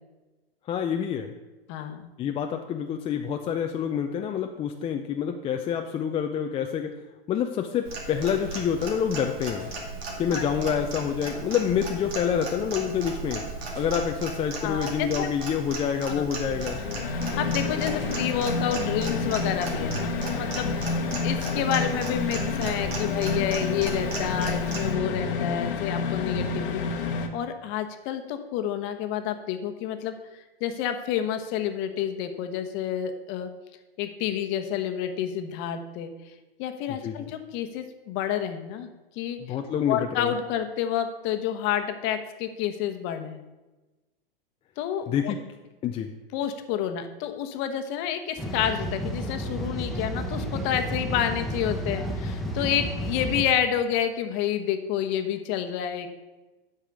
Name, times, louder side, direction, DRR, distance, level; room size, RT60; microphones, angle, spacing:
voice 1, 0.7-1.3 2.2-6.9 7.3-9.7 10.2-13.4 13.7-16.8 37.0-37.3 39.4-40.3 45.1-45.4 45.8-46.1, left 8 dB, 20° left, 4 dB, 0.5 m, -27 dB
voice 2, 1.7-2.1 10.3-10.4 14.6-15.3 16.1-16.2 17.4-20.7 21.2-26.8 27.3-33.5 34.0-36.1 36.6-38.9 39.2-39.6 39.9-43.4 44.8-45.3 46.3-56.1, left 9 dB, 40° left, 8 dB, 1.1 m, -29 dB
Clock, 7.8-24.9, right 3 dB, 80° right, 2.4 m, -36 dB
sound 1, 16.4-27.3, left 4 dB, 65° left, 1.2 m, -29 dB
sound 2, 48.4-53.5, equal, ahead, 1.1 m, -31 dB
8.5 x 5.6 x 6.5 m, 1.1 s
hypercardioid pair, 115°, 30 cm